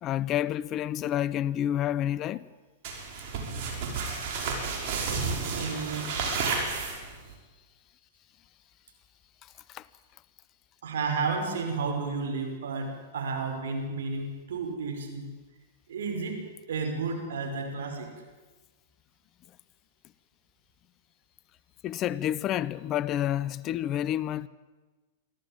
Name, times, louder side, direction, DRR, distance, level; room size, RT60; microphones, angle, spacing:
voice 1, 0.0-2.4 9.7-9.9 21.8-24.5, left 11 dB, 35° left, 0.7 m, -29 dB
sound 1, 2.8-7.3, right 4 dB, 55° right, 5.9 m, -31 dB
voice 2, 5.5-6.1 10.8-15.3 15.9-16.4 16.7-18.1, right 4 dB, 75° right, 5.5 m, -32 dB
24.0 x 14.5 x 9.0 m
hypercardioid pair, 120°, 0 cm